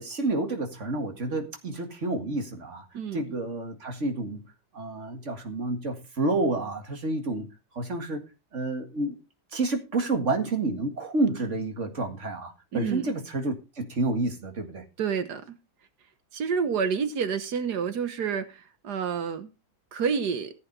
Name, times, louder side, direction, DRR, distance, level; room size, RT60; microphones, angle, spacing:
voice 1, 0.0-2.8 3.1-4.4 4.7-7.5 7.8-8.2 8.5-9.2 9.5-14.8, right 2 dB, 45° right, 2.3 m, -29 dB
voice 2, 2.9-3.3 12.7-13.1 15.0-15.5 16.3-19.5 19.9-20.5, right 6 dB, 80° right, 1.7 m, -29 dB
15.0 x 8.1 x 4.1 m
omnidirectional pair, 1.7 m